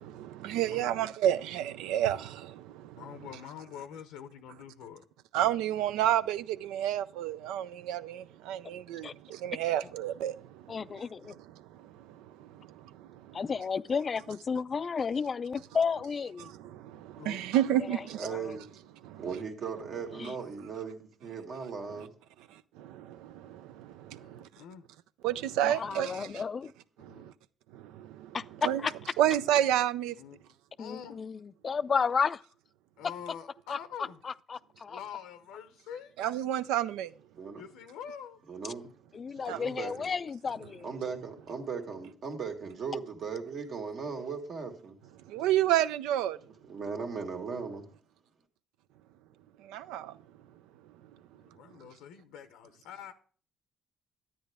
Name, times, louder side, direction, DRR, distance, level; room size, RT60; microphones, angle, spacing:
voice 1, 0.0-3.0 5.3-11.0 11.5-13.4 16.4-18.3 19.0-19.3 22.5-24.5 25.2-26.4 27.0-27.3 27.7-28.4 28.6-28.8 29.2-30.2 36.2-37.1 39.5-39.6 45.2-46.4 49.6-50.2, right 12 dB, 85° right, 0.4 m, -31 dB
voice 2, 3.0-5.1 17.2-17.5 24.1-24.8 27.1-27.3 30.2-31.2 33.0-34.2 34.9-36.1 37.6-38.4 38.8-38.9 51.4-53.1, left 8 dB, 85° left, 0.7 m, -45 dB
voice 3, 10.7-11.4 13.3-16.5 17.9-18.0 18.3-18.5 20.2-20.3 25.6-26.7 28.3-28.9 30.8-32.4 33.7-33.8 34.2-35.0 39.1-40.9, left 5 dB, 40° left, 0.4 m, -32 dB
voice 4, 18.1-18.7 19.2-22.1 37.3-37.6 38.5-38.9 39.5-40.1 40.8-45.0 46.7-47.9, right 5 dB, 60° right, 1.8 m, -38 dB
10.5 x 8.9 x 3.5 m
supercardioid pair, 65°, 0 cm